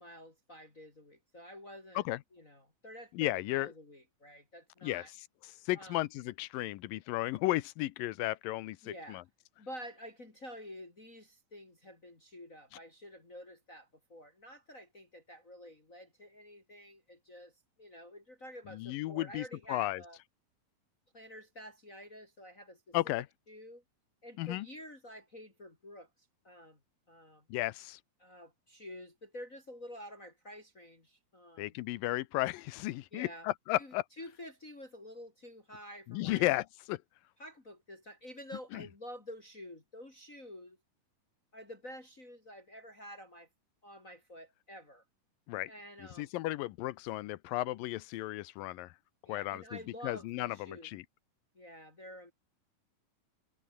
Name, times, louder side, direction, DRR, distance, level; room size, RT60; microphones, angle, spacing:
voice 1, 0.0-2.0 2.3-5.1 5.7-6.0 8.8-9.2 9.6-20.2 21.1-23.0 23.5-23.8 24.2-26.1 26.4-26.8 27.1-27.4 28.2-31.7 33.1-33.5 33.8-36.5 37.4-40.8 41.5-43.5 43.8-45.0 45.7-46.3 49.2-50.9 51.5-52.3, equal, 25° left, 3.3 m, -49 dB
voice 2, 3.1-3.7 4.8-5.0 5.7-9.2 18.7-20.0 22.9-23.3 24.4-24.7 27.5-28.0 31.6-34.0 36.1-37.0 38.7-38.8 45.5-45.7 46.0-48.9 49.3-51.0, left 17 dB, 80° left, 2.5 m, -34 dB
omnidirectional pair, 4.1 m